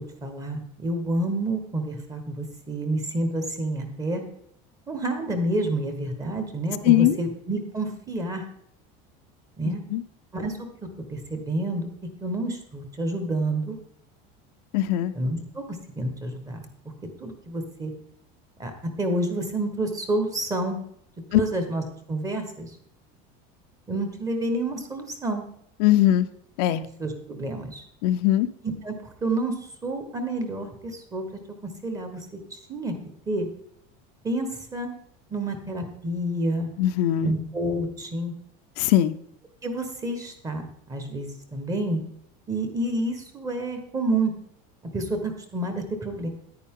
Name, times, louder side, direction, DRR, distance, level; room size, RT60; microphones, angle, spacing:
voice 1, 0.0-4.2 4.9-8.4 9.6-9.8 10.3-11.9 12.2-13.8 15.1-16.7 17.2-17.9 18.6-20.8 21.3-21.8 22.1-22.7 23.9-25.4 27.0-27.8 28.6-28.9 29.2-29.5 29.8-31.2 31.6-32.3 32.5-33.0 33.3-33.5 34.2-34.9 35.3-36.7 37.2-38.3 39.6-42.0 42.5-44.3 44.9-46.3, right 1 dB, 15° right, 6 dB, 1.3 m, -29 dB
voice 2, 6.8-7.2 9.9-10.0 14.7-15.1 21.3-21.4 25.8-26.3 26.6-26.8 28.0-28.5 36.8-37.3 38.8-39.1, left 13 dB, 85° left, 10 dB, 0.7 m, -20 dB
10.0 x 9.5 x 3.7 m, 0.71 s
cardioid pair, 165°, 21 cm